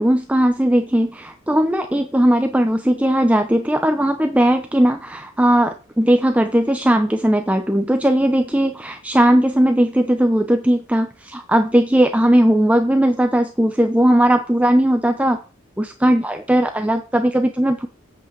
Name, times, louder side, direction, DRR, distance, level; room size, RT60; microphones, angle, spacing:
voice 1, 0.0-15.4 15.8-17.9, right 1 dB, 5° right, 7 dB, 0.6 m, -18 dB
8.2 x 5.6 x 7.4 m, 0.36 s
head